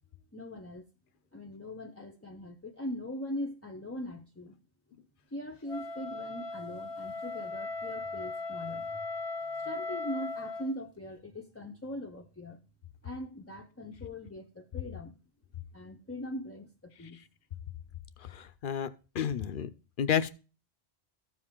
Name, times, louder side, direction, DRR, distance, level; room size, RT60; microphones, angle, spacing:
voice 1, 0.3-0.8 1.3-4.5 5.3-9.0 9.6-12.6 13.0-15.1 15.7-17.2, left 1 dB, 15° left, 0.5 m, -41 dB
Wind instrument woodwind instrument, 5.7-10.7, left 3 dB, 75° left, 1.2 m, -38 dB
voice 2, 18.3-18.9 19.1-19.7 20.0-20.3, left 8 dB, 55° left, 0.7 m, -30 dB
14.0 x 4.8 x 3.6 m
omnidirectional pair, 1.1 m